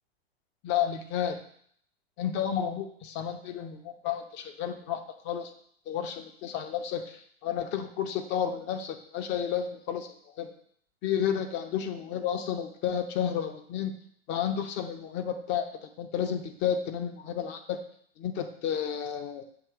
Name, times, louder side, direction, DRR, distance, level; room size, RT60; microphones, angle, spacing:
voice 1, 0.6-1.4 2.2-5.5 5.9-10.5 11.0-13.9 14.3-17.8 18.2-19.4, left 9 dB, 35° left, 7 dB, 0.8 m, -31 dB
6.7 x 2.9 x 5.7 m, 0.63 s
hypercardioid pair, 105°, 32 cm